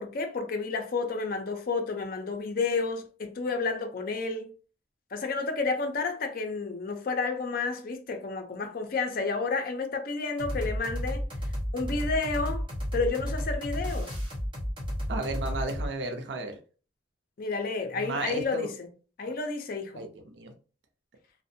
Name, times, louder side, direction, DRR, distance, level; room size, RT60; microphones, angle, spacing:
voice 1, 0.0-4.5 5.1-11.2 11.7-14.2 17.4-18.9 19.2-20.1, left 4 dB, 55° left, 0.5 m, -31 dB
sound 1, 10.4-15.9, equal, 30° right, 0.9 m, -32 dB
voice 2, 15.1-16.6 18.0-18.7 20.0-20.5, right 2 dB, 75° right, 0.6 m, -34 dB
2.5 x 2.1 x 2.7 m
head